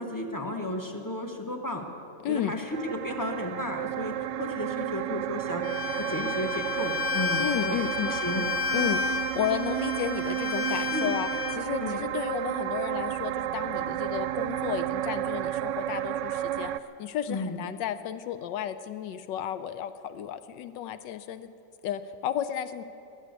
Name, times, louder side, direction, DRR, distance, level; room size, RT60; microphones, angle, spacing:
voice 1, 0.0-1.8 2.3-8.5 10.9-11.1 11.8-12.0 17.3-17.6, left 1 dB, 15° left, 4 dB, 0.7 m, -34 dB
voice 2, 2.2-2.5 7.4-8.1 8.7-11.3 11.6-16.7 17.0-21.5 21.8-22.8, left 10 dB, 75° left, 12 dB, 1.2 m, -33 dB
sound 1, 2.7-16.8, right 13 dB, 75° right, 1.1 m, -32 dB
Bowed string instrument, 5.6-11.6, left 6 dB, 45° left, 0.9 m, -32 dB
20.0 x 7.6 x 9.4 m, 2.8 s
omnidirectional pair, 2.1 m